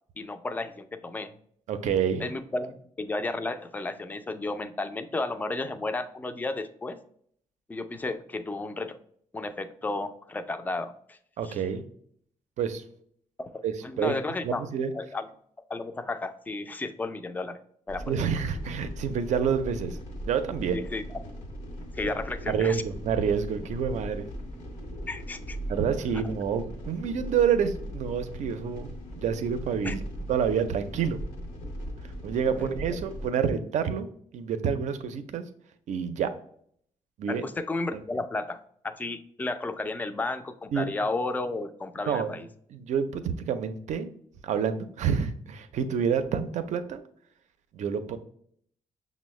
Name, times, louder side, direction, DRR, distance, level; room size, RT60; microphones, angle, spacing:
voice 1, 0.2-1.3 2.2-7.0 7.7-9.0 9.3-11.2 11.4-11.6 13.4-13.5 13.8-14.6 14.9-15.3 15.7-17.6 17.9-18.2 20.7-21.2 21.9-22.8 25.1-25.6 29.8-29.9 32.6-32.7 37.3-38.6 38.8-42.5, left 2 dB, 15° left, 9 dB, 0.3 m, -33 dB
voice 2, 1.7-2.3 11.4-11.8 12.6-12.8 13.6-14.2 14.4-14.9 18.1-20.0 20.2-20.8 22.5-24.3 25.7-28.9 29.2-30.0 30.3-31.2 32.2-34.1 34.3-35.5 35.9-36.3 37.2-37.4 37.9-38.0 40.7-40.9 42.1-42.3 42.7-44.1 44.4-47.0 47.7-48.2, right 7 dB, 65° right, 10 dB, 0.4 m, -28 dB
sound 1, 17.9-33.3, equal, 85° left, 0.8 m, -39 dB
6.0 x 2.0 x 3.1 m, 0.63 s
cardioid pair, 100°, 13 cm